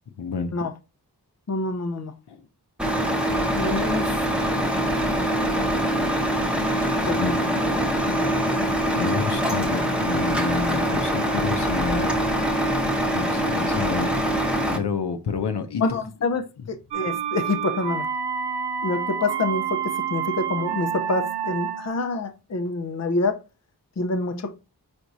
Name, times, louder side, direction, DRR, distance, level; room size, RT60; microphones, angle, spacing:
voice 1, 0.2-0.5 2.3-2.4 6.8-7.5 8.9-12.1 13.1-14.2 14.7-15.8, left 5 dB, 80° left, 0.7 m, -29 dB
voice 2, 1.5-2.1 3.5-4.1 7.1-7.6 8.1-8.2 15.8-18.1 18.8-19.8 20.1-23.4 24.0-24.5, left 3 dB, 40° left, 0.6 m, -27 dB
Truck, 2.8-14.8, equal, 5° right, 0.9 m, -23 dB
sound 1, 16.9-22.0, right 7 dB, 90° right, 0.5 m, -28 dB
4.7 x 4.4 x 2.6 m
wide cardioid pair, 70°, 40 cm